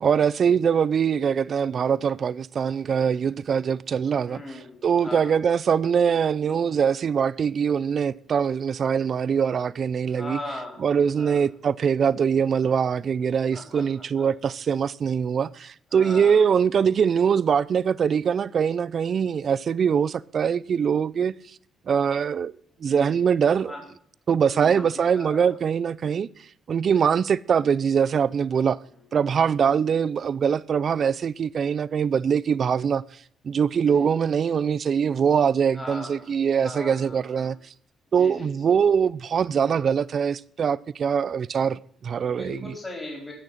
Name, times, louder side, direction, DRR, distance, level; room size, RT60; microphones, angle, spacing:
voice 1, 0.0-10.4 10.8-21.3 21.9-22.5 22.8-23.7 24.3-26.3 26.7-28.8 29.1-33.0 33.4-37.6 38.1-42.8, right 7 dB, 50° right, 0.5 m, -23 dB
voice 2, 4.3-4.8 5.0-5.3 10.2-10.8 11.2-11.4 13.5-14.3 15.9-16.4 22.8-23.2 23.7-23.8 24.4-24.9 25.2-25.5 29.4-29.6 30.9-31.0 33.9-34.1 35.7-36.3 36.6-37.5 38.2-38.5 42.3-43.3, left 1 dB, 15° left, 4.4 m, -38 dB
16.5 x 6.6 x 5.7 m
cardioid pair, 90°, 0 cm